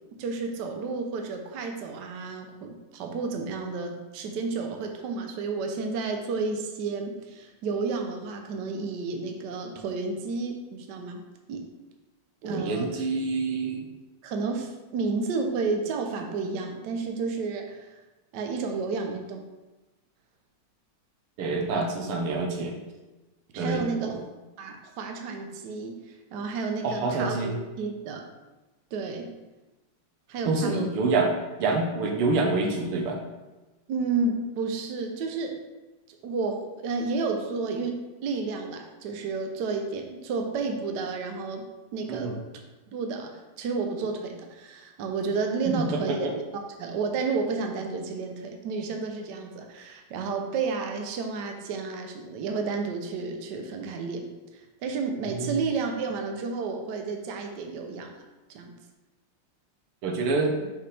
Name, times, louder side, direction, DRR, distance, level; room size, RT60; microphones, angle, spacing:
voice 1, 0.2-11.2 11.5-11.6 12.4-12.9 14.2-17.9 18.3-19.5 23.5-24.2 24.6-28.2 28.9-29.3 30.3-30.9 33.9-35.6 36.2-41.7 41.9-42.4 42.9-46.2 46.5-58.2 58.5-58.8, right 4 dB, 65° right, 4 dB, 1.1 m, -31 dB
voice 2, 12.4-13.8 21.4-22.7 23.6-24.2 26.8-27.5 30.5-31.3 31.6-33.2 42.1-42.4 45.7-46.3 55.4-55.6 60.0-60.6, right 3 dB, 85° right, 2 dB, 1.9 m, -27 dB
5.7 x 5.6 x 3.3 m, 1.1 s
omnidirectional pair, 2.4 m